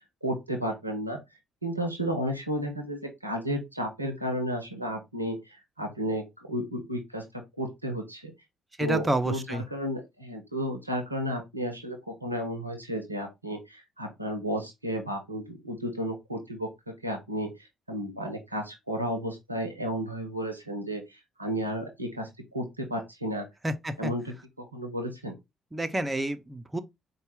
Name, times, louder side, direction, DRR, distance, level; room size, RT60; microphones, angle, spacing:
voice 1, 0.2-1.2 1.6-5.4 5.8-7.2 7.6-8.3 8.8-16.7 17.0-17.5 17.9-23.5 24.0-25.4, equal, 90° right, 0.5 m, -33 dB
voice 2, 8.8-9.6 23.6-24.1 25.7-26.8, right 1 dB, 15° right, 0.6 m, -29 dB
4.2 x 2.2 x 3.2 m
figure-of-eight pair, 45°, 0 cm